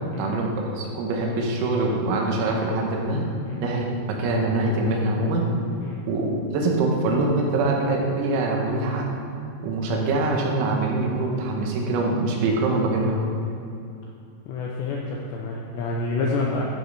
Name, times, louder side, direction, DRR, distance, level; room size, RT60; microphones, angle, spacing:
voice 1, 0.2-3.2 3.6-5.5 6.1-9.1 9.6-13.3, right 2 dB, 90° right, 0 dB, 4.1 m, -24 dB
voice 2, 14.5-16.6, left 3 dB, 85° left, -2 dB, 2.5 m, -28 dB
12.0 x 9.3 x 3.4 m, 2.7 s
omnidirectional pair, 5.9 m